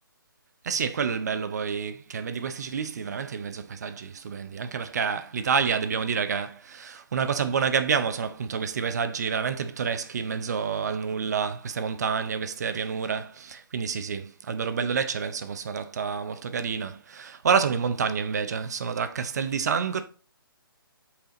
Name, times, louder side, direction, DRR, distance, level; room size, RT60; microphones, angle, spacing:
voice 1, 0.6-20.0, right 6 dB, 45° right, 0.7 m, -28 dB
5.8 x 4.9 x 3.7 m
figure-of-eight pair, 140°, 12 cm